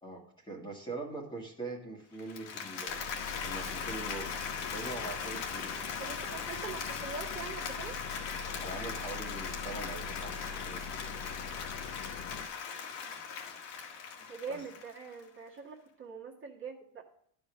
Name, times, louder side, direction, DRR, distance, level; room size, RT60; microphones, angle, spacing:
voice 1, 0.0-3.0 3.4-4.3 4.7-5.8 8.6-10.8 14.5-14.6, right 3 dB, 10° left, 0 dB, 1.7 m, -42 dB
Applause, 2.2-15.2, left 6 dB, 65° left, 1.9 m, -39 dB
sound 1, 2.9-12.5, left 5 dB, 45° left, 0.8 m, -44 dB
voice 2, 6.0-8.0 14.2-17.0, right 5 dB, 25° right, -2 dB, 1.8 m, -43 dB
11.5 x 5.2 x 6.2 m, 0.64 s
cardioid pair, 140°, 44 cm